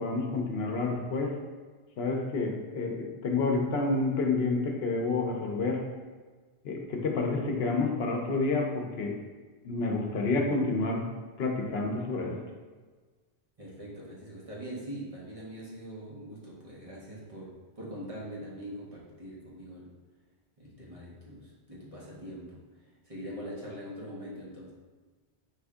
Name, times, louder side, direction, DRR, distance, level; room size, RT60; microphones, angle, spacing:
voice 1, 0.0-1.3 2.0-5.8 6.6-9.2 9.6-11.1 11.4-12.4, left 3 dB, 70° left, 1 dB, 0.8 m, -29 dB
voice 2, 13.6-19.9 20.6-24.7, equal, 35° right, -6 dB, 0.9 m, -43 dB
4.7 x 2.6 x 3.5 m, 1.4 s
omnidirectional pair, 1.1 m